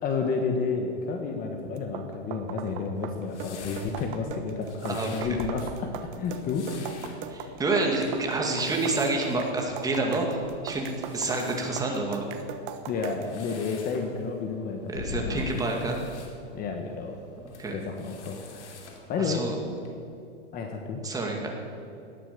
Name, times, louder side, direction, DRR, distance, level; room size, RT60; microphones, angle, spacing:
voice 1, 0.0-6.7 12.8-15.6 16.5-17.2 17.7-18.4 18.7-18.8 19.1-19.7 20.5-21.0, left 4 dB, 25° left, 4 dB, 1.3 m, -31 dB
sound 1, 1.8-13.3, right 8 dB, 40° right, 1.2 m, -39 dB
sound 2, 2.9-19.9, left 4 dB, 90° left, 3.4 m, -45 dB
voice 2, 7.3-12.3 14.9-16.0 17.4-17.8 19.2-19.5 21.0-21.5, right 2 dB, 10° right, 0 dB, 2.2 m, -28 dB
18.0 x 11.5 x 6.8 m, 2.7 s
supercardioid pair, 155°, 34 cm